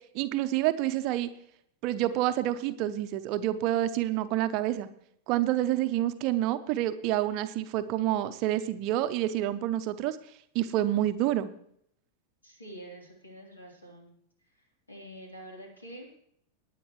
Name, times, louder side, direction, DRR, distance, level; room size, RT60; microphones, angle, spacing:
voice 1, 0.1-1.3 1.8-4.9 5.3-10.2 10.5-11.5, right 13 dB, 40° right, 11 dB, 0.7 m, -28 dB
voice 2, 12.4-14.1 14.4-16.2, right 1 dB, 80° left, 0 dB, 3.5 m, -47 dB
19.5 x 9.3 x 3.1 m, 0.69 s
figure-of-eight pair, 90°, 0 cm